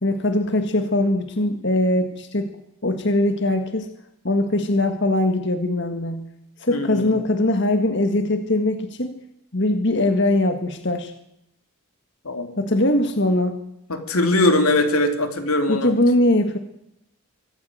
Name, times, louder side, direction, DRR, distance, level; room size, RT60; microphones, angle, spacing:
voice 1, 0.0-2.5 2.8-3.9 4.2-6.2 6.6-9.1 9.5-11.1 12.6-13.5 15.7-16.6, left 1 dB, 55° left, 8 dB, 1.8 m, -21 dB
voice 2, 6.7-7.2 12.2-12.6 13.9-15.9, left 2 dB, 90° left, 7 dB, 3.3 m, -21 dB
25.0 x 15.5 x 9.3 m, 0.81 s
head